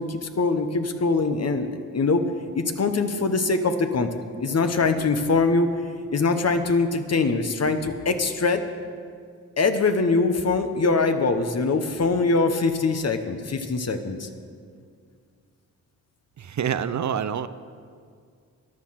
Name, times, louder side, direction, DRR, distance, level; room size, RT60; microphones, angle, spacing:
voice 1, 0.0-2.2 2.5-4.1 4.4-5.7 6.1-8.6 9.6-14.3, left 3 dB, 45° left, 8 dB, 1.2 m, -23 dB
voice 2, 16.4-17.5, right 8 dB, 55° right, 13 dB, 0.6 m, -26 dB
14.0 x 11.0 x 5.9 m, 2.2 s
cardioid pair, 70°, 34 cm